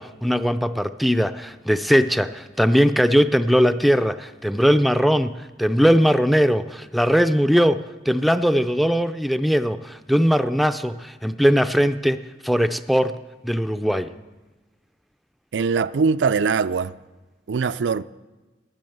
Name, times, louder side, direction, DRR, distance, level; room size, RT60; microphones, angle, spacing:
voice 1, 0.0-13.2 13.4-14.1, equal, ahead, 0.4 m, -20 dB
voice 2, 15.5-16.9 17.5-18.0, right 5 dB, 85° right, 0.4 m, -21 dB
14.0 x 11.0 x 7.8 m
head